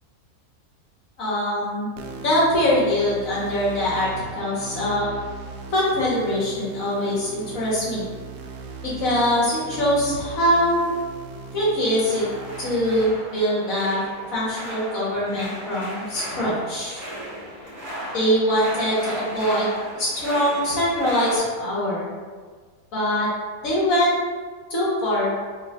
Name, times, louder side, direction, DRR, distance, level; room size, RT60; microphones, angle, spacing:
voice 1, 1.2-1.9 2.2-4.1 4.4-5.1 5.7-8.0 8.8-10.8 11.5-12.2 12.6-14.0 14.3-17.0 18.1-19.7 19.9-22.0 22.9-23.3 23.6-24.2 24.7-25.3, equal, 60° left, -6 dB, 1.6 m, -23 dB
sound 1, 2.0-13.0, right 4 dB, 70° right, 0.6 m, -38 dB
sound 2, 11.8-21.4, equal, 20° right, 1.6 m, -36 dB
3.2 x 3.2 x 4.2 m, 1.5 s
omnidirectional pair, 1.7 m